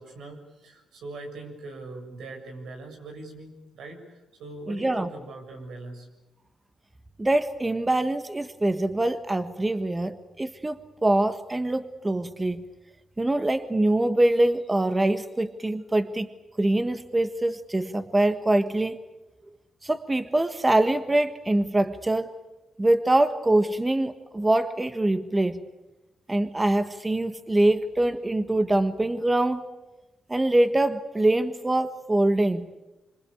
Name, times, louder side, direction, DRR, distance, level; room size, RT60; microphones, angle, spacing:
voice 1, 0.0-6.1, right 2 dB, 85° right, 3 dB, 7.0 m, -41 dB
voice 2, 4.7-5.1 7.2-12.6 13.2-16.3 16.6-19.0 19.8-22.4 22.8-25.6 26.3-29.7 30.3-32.7, right 1 dB, 20° right, 10 dB, 1.5 m, -24 dB
26.0 x 25.5 x 8.5 m, 1.0 s
cardioid pair, 75°, 0 cm